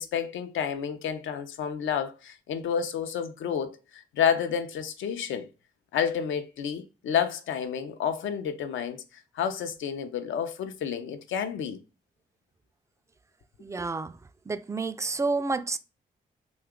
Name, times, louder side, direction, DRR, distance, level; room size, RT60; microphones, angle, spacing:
voice 1, 0.0-5.5 5.9-9.0 9.3-11.8, left 8 dB, 70° left, 0.5 m, -30 dB
voice 2, 13.6-14.1 14.5-15.8, right 3 dB, 15° right, 0.3 m, -29 dB
2.9 x 2.3 x 3.6 m
supercardioid pair, 45°, 21 cm